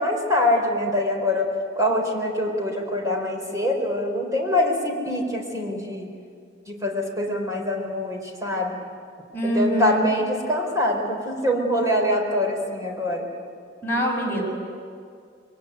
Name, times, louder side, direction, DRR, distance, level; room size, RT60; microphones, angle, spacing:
voice 1, 0.0-1.5 1.8-6.1 6.7-8.8 9.4-13.3, left 1 dB, 20° right, 1 dB, 4.4 m, -24 dB
voice 2, 9.3-10.1 13.8-14.4, equal, 15° left, -3 dB, 6.4 m, -24 dB
27.5 x 22.5 x 9.4 m, 2.2 s
head